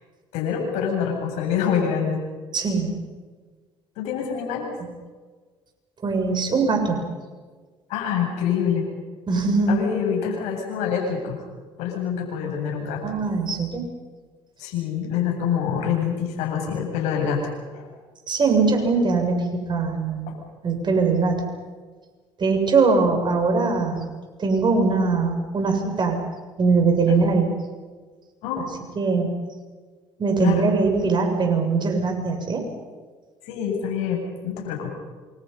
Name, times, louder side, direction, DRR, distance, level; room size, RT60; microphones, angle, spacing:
voice 1, 0.3-2.2 4.0-4.8 7.9-8.9 9.7-11.4 11.8-13.0 14.6-17.9 20.3-20.4 27.1-27.2 28.4-28.7 30.4-30.7 33.4-34.9, left 7 dB, 75° left, 1 dB, 8.0 m, -26 dB
voice 2, 2.5-3.0 6.0-7.0 9.3-9.8 13.0-13.9 18.3-20.3 20.6-21.5 22.4-24.0 24.4-26.2 26.6-27.5 29.0-29.3 30.2-32.6, right 4 dB, 40° right, 4 dB, 7.3 m, -21 dB
28.0 x 26.5 x 5.7 m, 1.4 s
hypercardioid pair, 65°, 12 cm